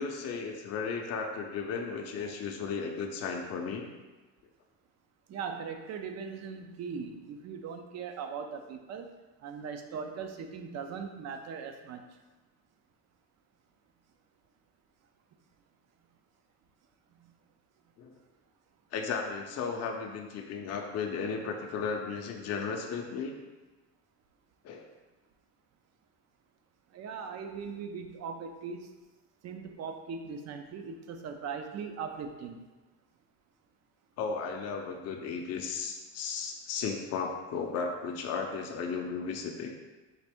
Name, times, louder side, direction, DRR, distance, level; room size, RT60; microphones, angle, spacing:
voice 1, 0.0-3.9 18.0-18.1 18.9-23.3 24.6-24.9 34.2-39.7, left 5 dB, 45° left, 2 dB, 0.5 m, -35 dB
voice 2, 5.3-9.1 9.4-12.0 17.2-17.3 26.9-28.9 29.4-32.6, right 6 dB, 45° right, 6 dB, 0.5 m, -39 dB
4.0 x 2.5 x 3.4 m, 1.2 s
cardioid pair, 105°, 37 cm